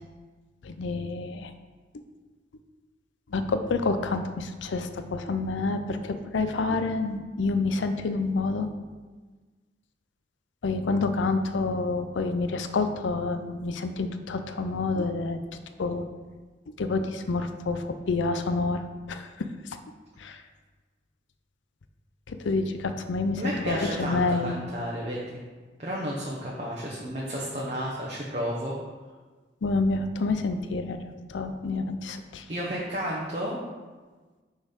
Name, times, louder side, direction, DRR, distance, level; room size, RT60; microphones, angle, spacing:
voice 1, 0.6-1.5 3.3-8.7 10.6-15.4 15.8-16.1 16.8-19.8 20.2-20.4 22.3-24.6 29.6-31.0 31.3-32.5, left 3 dB, 80° left, 8 dB, 0.5 m, -28 dB
voice 2, 23.4-25.2 25.8-28.7 32.5-33.6, equal, 35° right, -4 dB, 0.8 m, -32 dB
6.1 x 4.0 x 5.1 m, 1.4 s
head